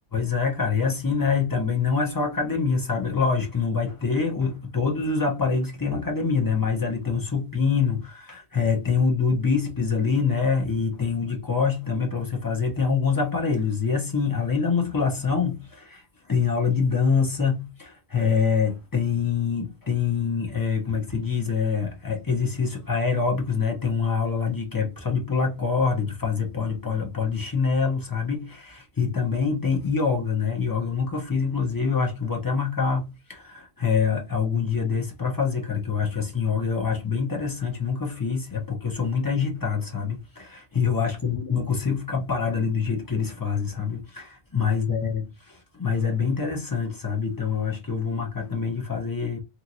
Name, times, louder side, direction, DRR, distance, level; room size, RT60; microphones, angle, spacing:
voice 1, 0.1-16.0 16.3-49.4, left 5 dB, 20° left, 0.6 m, -25 dB
3.0 x 2.5 x 2.5 m
omnidirectional pair, 1.3 m